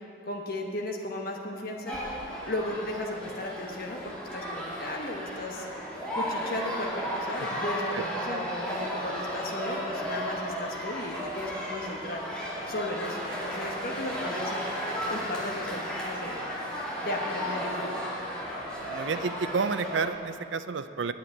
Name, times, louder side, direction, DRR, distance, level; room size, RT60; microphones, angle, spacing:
voice 1, 0.3-2.0 2.5-4.0 4.3-5.7 6.1-12.3 12.7-14.7 15.1-16.5 17.0-17.9, left 1 dB, 50° left, 0 dB, 1.2 m, -35 dB
sound 1, 1.9-20.1, equal, 5° left, 2.3 m, -34 dB
voice 2, 18.8-21.1, right 5 dB, 75° right, 11 dB, 0.5 m, -30 dB
8.9 x 8.3 x 9.2 m, 2.8 s
head